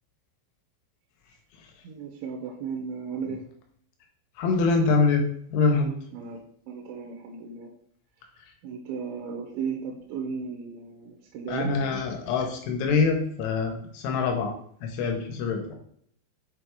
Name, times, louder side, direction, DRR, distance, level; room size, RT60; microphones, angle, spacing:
voice 1, 1.8-3.4 6.1-6.4 6.7-7.7 8.6-11.7, right 6 dB, 75° right, 0 dB, 3.1 m, -35 dB
voice 2, 4.4-5.2 5.5-5.9 11.5-14.5 14.8-15.6, left 4 dB, 80° left, 3 dB, 3.4 m, -24 dB
8.0 x 3.4 x 4.7 m, 0.64 s
omnidirectional pair, 5.6 m